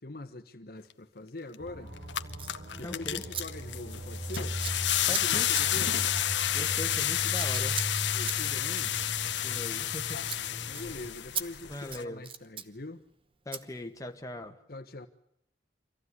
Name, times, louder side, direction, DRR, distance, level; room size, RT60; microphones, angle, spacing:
voice 1, 0.0-1.9 2.8-4.6 5.1-6.1 8.1-8.9 10.6-13.0 14.7-15.1, left 2 dB, 55° left, 1.2 m, -43 dB
sound 1, 1.5-1.6 2.0-12.0, left 12 dB, 90° left, 1.0 m, -30 dB
sound 2, 1.6-11.1, equal, 60° right, 4.6 m, -39 dB
Scissors, 2.3-2.6 3.3-3.4 3.7-4.0 4.3-10.0 10.2-10.4 10.7-10.9 11.3-11.5 11.8-12.7 13.5-13.6, right 7 dB, 30° right, 1.0 m, -39 dB
voice 2, 2.8-3.2 5.1-5.5 6.5-7.8 9.4-10.2 11.7-12.3 13.4-14.6, left 1 dB, 20° left, 1.6 m, -40 dB
25.0 x 15.5 x 9.7 m
head